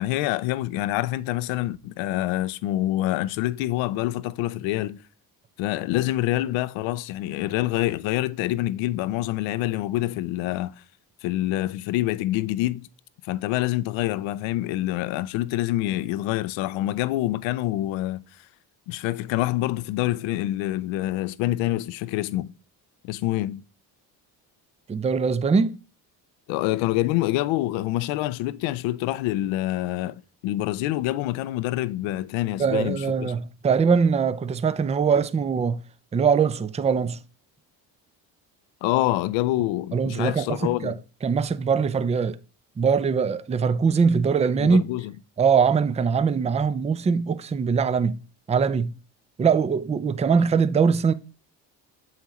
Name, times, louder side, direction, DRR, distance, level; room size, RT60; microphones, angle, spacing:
voice 1, 0.0-5.0 5.6-10.7 11.2-12.9 13.2-18.2 18.9-22.5 23.0-23.6 26.5-33.3 38.8-41.0 44.6-45.1, left 16 dB, 85° left, 0.6 m, -26 dB
voice 2, 24.9-25.8 32.6-35.8 36.1-37.2 39.9-41.0 41.2-42.4 42.8-44.9 45.4-48.2 48.5-48.9 49.4-51.1, right 6 dB, 15° right, 0.4 m, -22 dB
7.2 x 5.8 x 3.0 m
supercardioid pair, 75°, 45 cm